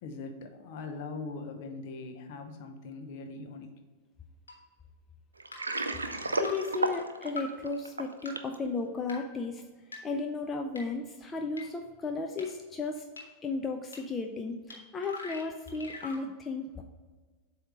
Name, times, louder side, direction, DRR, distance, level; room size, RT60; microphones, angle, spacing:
voice 1, 0.0-3.7, left 3 dB, 50° left, 5 dB, 0.8 m, -41 dB
sound 1, 4.5-4.6 5.5-5.6 6.4-6.5 7.4-7.5 8.2-8.3 9.1-9.2 9.9-10.0 10.7-10.8 11.6-11.7 12.4-12.5 13.2-13.3 13.9-14.0 14.7-14.8 15.0-16.2, left 3 dB, 75° left, 1.3 m, -41 dB
Water, 5.4-8.6, right 2 dB, 80° right, 0.4 m, -33 dB
voice 2, 6.1-9.6 10.0-13.0 13.4-16.8, left 4 dB, 20° left, 3 dB, 0.4 m, -34 dB
7.8 x 2.8 x 4.9 m, 1.4 s
figure-of-eight pair, 90°, 0 cm